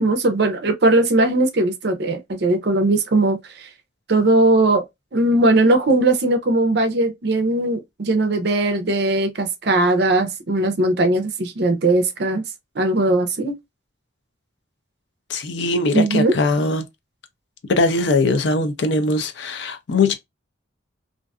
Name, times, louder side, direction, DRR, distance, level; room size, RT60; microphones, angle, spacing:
voice 1, 0.0-3.7 4.1-4.8 5.1-12.4 12.8-13.6 15.9-16.4, right 2 dB, 55° right, 0.5 m, -19 dB
voice 2, 15.3-16.8 17.7-20.1, left 3 dB, 65° left, 0.4 m, -20 dB
2.5 x 2.3 x 2.3 m
head